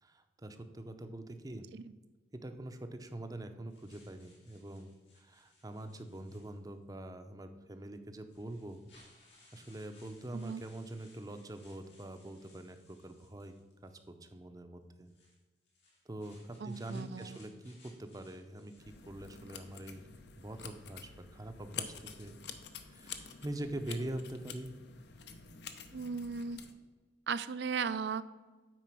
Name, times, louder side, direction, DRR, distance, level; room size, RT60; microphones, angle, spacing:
voice 1, 0.0-1.7 2.3-8.8 9.5-13.5 13.8-15.1 16.1-20.0 20.4-22.4 22.8-24.7, right 1 dB, 20° right, 8 dB, 0.6 m, -44 dB
sound 1, 3.7-6.9 7.7-7.8 8.3-14.1 15.0-20.2, left 2 dB, 85° left, 2.8 m, -65 dB
voice 2, 16.6-17.4 25.9-26.6 27.3-28.2, right 5 dB, 70° right, 15 dB, 0.4 m, -37 dB
sound 2, 18.8-26.7, left 7 dB, 70° left, 0.7 m, -48 dB
9.2 x 4.3 x 5.9 m, 1.3 s
head